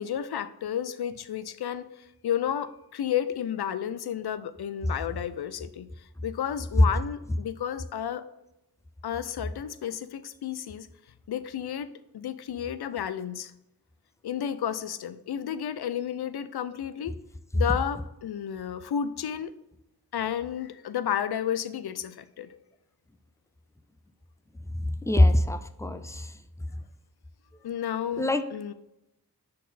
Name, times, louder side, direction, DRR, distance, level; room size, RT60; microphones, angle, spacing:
voice 1, 0.0-5.9 6.2-8.2 9.0-10.9 11.3-13.5 14.2-17.2 17.5-19.5 20.1-22.5 27.6-28.7, left 9 dB, 75° left, 14 dB, 0.5 m, -32 dB
voice 2, 25.0-26.3 28.2-28.4, left 1 dB, 10° left, 10 dB, 0.5 m, -23 dB
6.4 x 4.1 x 4.1 m, 0.88 s
cardioid pair, 55°, 38 cm